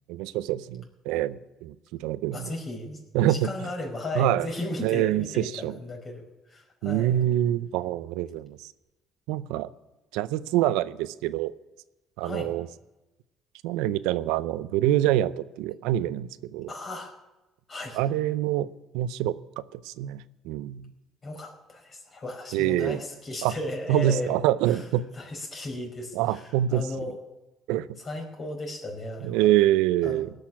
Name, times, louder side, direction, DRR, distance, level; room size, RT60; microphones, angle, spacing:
voice 1, 0.1-2.5 3.1-3.5 4.2-4.5 4.8-5.2 5.5-5.7 6.8-8.7 9.3-9.7 10.1-11.5 12.2-12.7 13.6-16.7 17.9-20.9 22.5-23.0 23.4-23.5 23.9-25.0 26.1-26.8 27.7-27.9 29.2-30.3, right 13 dB, 85° right, 16 dB, 0.5 m, -26 dB
voice 2, 2.3-7.2 12.2-12.5 16.7-17.1 17.7-18.0 21.2-24.3 24.7-24.8 25.1-27.2 28.0-29.5 30.0-30.2, left 2 dB, 40° left, 2 dB, 4.9 m, -35 dB
18.5 x 6.6 x 9.7 m, 1.0 s
supercardioid pair, 85°, 0 cm